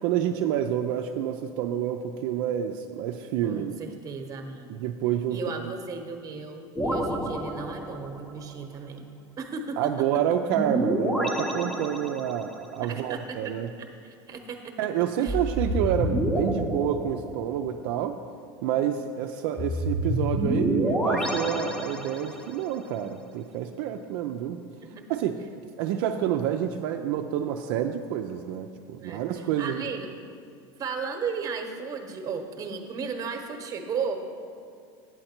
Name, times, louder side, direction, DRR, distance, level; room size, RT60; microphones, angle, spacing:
voice 1, 0.0-3.7 4.7-5.7 7.3-7.4 9.8-13.7 14.8-18.2 18.6-24.6 25.1-25.4 25.8-29.8, right 10 dB, 65° right, 5 dB, 0.4 m, -28 dB
voice 2, 3.4-4.7 5.3-9.1 9.4-10.2 12.8-14.7 15.2-15.4 24.8-25.2 29.0-30.1 30.8-34.2, right 5 dB, 30° right, 5 dB, 1.0 m, -35 dB
sound 1, 6.8-8.3 10.5-12.6 15.3-17.8 19.6-22.6, equal, 5° left, 0.8 m, -29 dB
8.8 x 7.7 x 4.4 m, 2.3 s
supercardioid pair, 125°, 12 cm